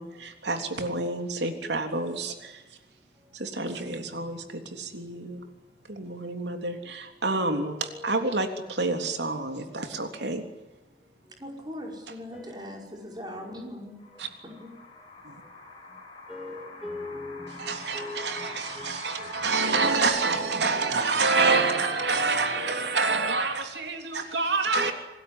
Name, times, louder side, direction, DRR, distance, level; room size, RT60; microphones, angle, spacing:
voice 1, 0.0-2.8 3.3-5.5 5.9-10.4 14.2-14.3 15.2-15.4 17.6-24.9, right 3 dB, 70° right, 3.4 m, -28 dB
voice 2, 7.3-8.3 9.0-9.2 12.3-12.9 13.5-14.2 14.5-14.6 16.3-19.6 20.3-23.0 23.4-23.6 24.8-24.9, left 2 dB, 5° right, 1.9 m, -43 dB
voice 3, 11.4-14.0 14.4-14.8, left 1 dB, 25° right, 5.4 m, -40 dB
sound 1, 14.0-20.0, left 3 dB, 30° left, 7.1 m, -44 dB
27.5 x 20.0 x 9.9 m
head